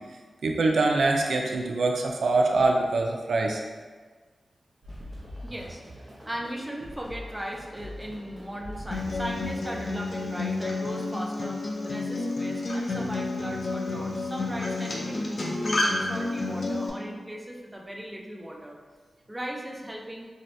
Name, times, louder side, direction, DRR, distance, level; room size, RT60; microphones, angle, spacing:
voice 1, 0.4-3.6, right 3 dB, 90° right, 1 dB, 0.3 m, -24 dB
sound 1, 4.8-10.9, equal, 35° right, 0.8 m, -43 dB
voice 2, 5.4-11.6 11.8-18.8 19.3-20.3, equal, 15° right, -1 dB, 0.4 m, -37 dB
Acoustic guitar, 8.9-16.9, left 2 dB, 50° left, 0.4 m, -30 dB
2.7 x 2.6 x 3.1 m, 1.4 s
wide cardioid pair, 105°, 0 cm